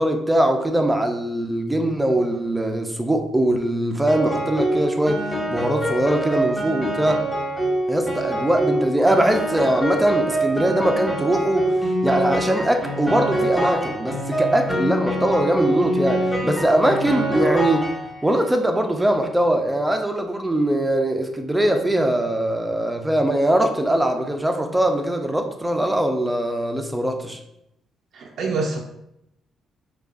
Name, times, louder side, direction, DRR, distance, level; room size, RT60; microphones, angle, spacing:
voice 1, 0.0-7.2 7.9-11.7 12.0-17.9 18.2-27.4, right 1 dB, 10° right, 0.5 m, -21 dB
Piano, 4.1-18.5, right 1 dB, 10° left, 1.4 m, -25 dB
voice 2, 28.1-28.8, right 3 dB, 65° right, 0.4 m, -25 dB
4.8 x 2.3 x 2.4 m
cardioid pair, 90°, 0 cm